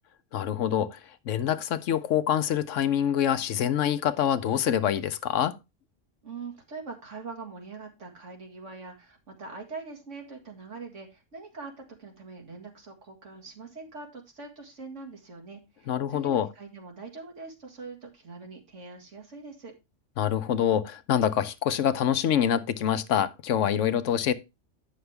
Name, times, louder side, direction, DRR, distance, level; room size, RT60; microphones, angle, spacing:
voice 1, 0.3-5.6 15.9-16.5 20.2-24.3, left 9 dB, 80° left, 1.1 m, -26 dB
voice 2, 6.2-19.7, right 4 dB, 80° right, 2.3 m, -43 dB
9.6 x 6.4 x 3.4 m
omnidirectional pair, 1.3 m